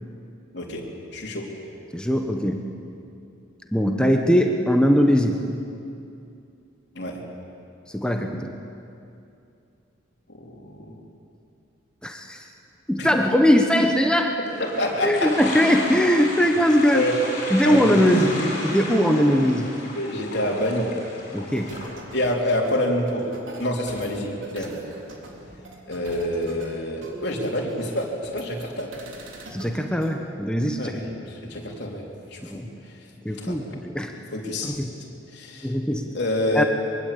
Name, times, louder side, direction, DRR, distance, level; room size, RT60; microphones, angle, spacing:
voice 1, 1.1-1.4 7.0-7.2 10.3-11.0 13.0-13.1 14.6-15.3 16.4-16.5 16.9-17.2 17.6-18.5 19.9-20.9 22.1-23.3 23.6-24.7 25.9-28.9 30.8-32.0 32.3-32.6 33.4-33.6 34.3-34.8 35.3-35.7 36.1-36.7, left 1 dB, 55° left, -1 dB, 3.9 m, -27 dB
voice 2, 1.9-2.6 3.7-5.4 7.9-8.6 12.0-12.5 12.9-14.4 15.0-17.0 17.5-19.7 21.3-21.7 29.5-30.9 32.5-32.7 33.2-34.1 34.6-34.9 35.6-36.1 36.5-36.6, equal, 5° left, 3 dB, 1.2 m, -20 dB
sound 1, 14.4-21.9, left 1 dB, 40° left, 7.8 m, -34 dB
sound 2, 21.6-30.1, right 1 dB, 70° right, 3.6 m, -43 dB
23.0 x 23.0 x 8.7 m, 2.7 s
head